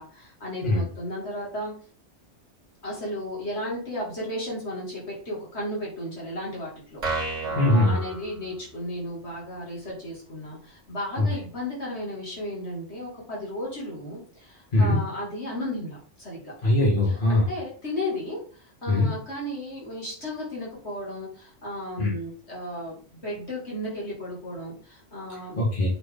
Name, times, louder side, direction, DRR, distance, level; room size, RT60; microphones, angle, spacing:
voice 1, 0.0-1.7 2.8-16.5 17.3-25.6, left 1 dB, 60° left, -5 dB, 3.0 m, -34 dB
sound 1, 7.0-8.9, right 3 dB, 80° right, 2.3 m, -32 dB
voice 2, 7.5-8.0 11.2-11.3 14.7-15.0 16.6-17.5 18.9-19.1 22.0-22.1 25.6-25.9, left 2 dB, 45° left, -5 dB, 2.7 m, -21 dB
7.9 x 4.2 x 3.9 m, 0.41 s
omnidirectional pair, 1.3 m